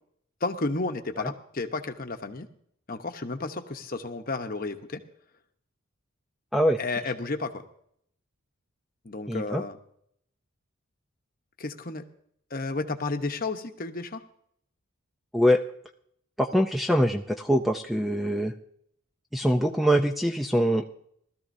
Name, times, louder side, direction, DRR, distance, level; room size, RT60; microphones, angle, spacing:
voice 1, 0.4-2.5 2.9-5.0 6.8-7.6 9.0-9.8 11.6-12.0 12.5-14.2, left 3 dB, 40° left, 6 dB, 1.0 m, -32 dB
voice 2, 9.3-9.6 15.3-15.6 16.4-18.5 19.3-20.8, equal, ahead, 5 dB, 0.4 m, -23 dB
20.0 x 13.5 x 2.7 m, 0.68 s
head